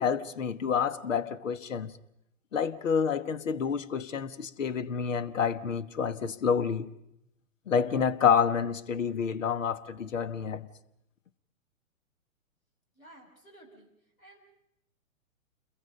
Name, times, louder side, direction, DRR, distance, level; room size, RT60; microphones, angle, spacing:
voice 1, 0.0-1.9 2.5-6.9 7.7-10.7, left 7 dB, 65° left, 1.3 m, -28 dB
voice 2, 12.9-14.4, right 1 dB, 85° left, 6.1 m, -55 dB
28.5 x 22.0 x 5.2 m
figure-of-eight pair, 120°, 41 cm